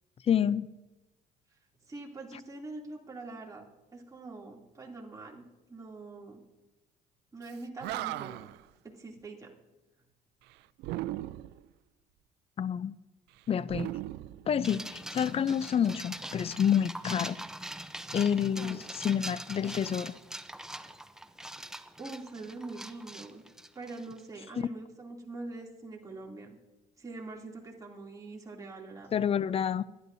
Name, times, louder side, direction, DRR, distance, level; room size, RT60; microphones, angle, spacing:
voice 1, 0.3-0.7 12.6-13.0 13.5-13.9 14.5-17.4 18.1-20.2 29.1-29.8, left 8 dB, 35° left, 0.5 m, -28 dB
voice 2, 1.9-6.4 7.3-8.5 8.9-9.5 18.6-18.8 22.0-23.4 23.7-26.6 27.0-29.1, right 3 dB, 20° right, 2.8 m, -44 dB
Animal, 7.5-7.6 7.8-8.6 10.8-11.7 13.7-15.0, right 16 dB, 85° right, 0.4 m, -37 dB
sound 1, 14.6-24.2, right 1 dB, 5° right, 0.7 m, -43 dB
25.0 x 11.0 x 2.7 m
cardioid pair, 110°, 17 cm